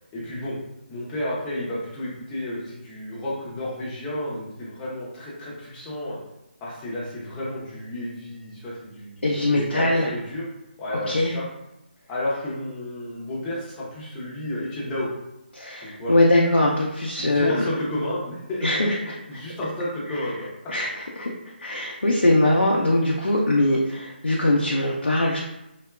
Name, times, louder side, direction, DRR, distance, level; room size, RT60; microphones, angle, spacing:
voice 1, 0.1-0.6 0.9-6.2 6.6-10.4 10.8-11.4 12.1-15.1 15.8-16.1 17.2-18.9 19.3-20.5, left 1 dB, 15° left, -7 dB, 0.6 m, -31 dB
voice 2, 9.2-10.1 11.1-11.3 15.5-17.7 18.6-19.2 20.1-20.3 20.7-21.3 21.6-25.5, left 1 dB, 85° left, -2 dB, 0.4 m, -21 dB
2.7 x 2.2 x 2.2 m, 0.90 s
figure-of-eight pair, 150°, 6 cm